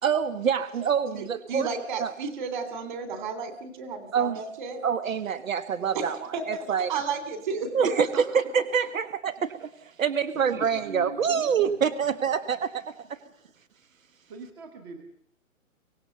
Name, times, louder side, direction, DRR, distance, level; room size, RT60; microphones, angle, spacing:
voice 1, 0.0-1.7 2.0-2.1 4.1-4.4 4.8-6.2 6.5-6.9 7.7-12.9, right 7 dB, 70° right, 12 dB, 1.5 m, -26 dB
voice 2, 1.1-4.8 5.9-7.9, right 4 dB, 35° right, 9 dB, 3.3 m, -33 dB
voice 3, 10.3-11.8 14.3-15.0, right 3 dB, 20° right, 6 dB, 1.2 m, -43 dB
24.5 x 18.0 x 6.9 m, 0.68 s
hypercardioid pair, 175°, 41 cm